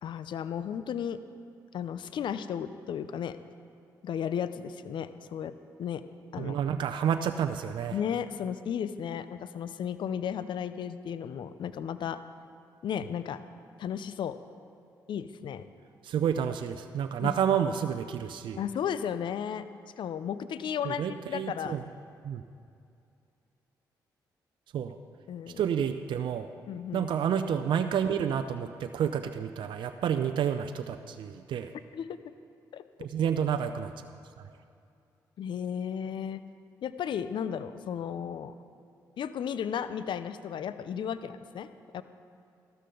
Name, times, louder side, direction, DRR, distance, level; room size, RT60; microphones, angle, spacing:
voice 1, 0.0-1.2 1.7-3.4 4.0-5.5 5.8-6.0 6.3-6.6 7.9-12.2 12.8-13.4 13.8-14.4 15.1-15.6 17.2-17.3 18.6-19.6 20.0-21.8 25.3-25.6 26.7-27.1 31.9-32.2 32.7-32.8 35.4-36.4 36.8-38.5 39.2-41.7 41.9-42.0, left 8 dB, 65° left, 13 dB, 0.6 m, -34 dB
voice 2, 6.4-8.0 16.0-18.6 20.8-21.8 22.2-22.4 24.7-25.0 25.6-26.5 26.9-31.7 33.0-33.9, right 8 dB, 65° right, 7 dB, 0.5 m, -29 dB
13.5 x 12.5 x 3.9 m, 2.5 s
hypercardioid pair, 50°, 9 cm